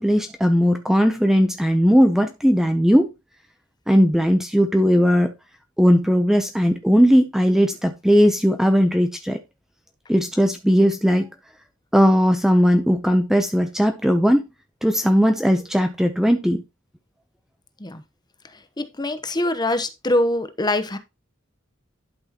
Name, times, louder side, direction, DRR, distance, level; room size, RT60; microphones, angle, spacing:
voice 1, 0.0-3.1 3.9-5.3 5.8-9.4 10.1-11.3 11.9-14.5 14.8-16.6, equal, ahead, 0.6 m, -18 dB
voice 2, 18.5-21.0, left 1 dB, 20° left, 0.9 m, -24 dB
11.5 x 6.2 x 2.9 m
head